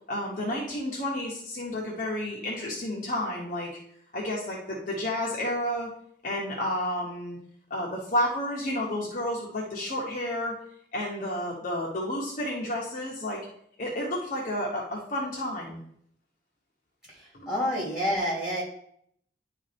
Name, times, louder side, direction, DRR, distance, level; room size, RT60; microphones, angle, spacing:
voice 1, 0.1-3.7 4.1-5.9 6.2-7.4 7.7-10.6 10.9-13.4 13.8-15.8 17.3-17.5, left 1 dB, 45° left, -4 dB, 1.2 m, -31 dB
voice 2, 17.1-18.6, equal, 5° right, -6 dB, 2.9 m, -29 dB
10.5 x 3.6 x 3.4 m, 0.68 s
head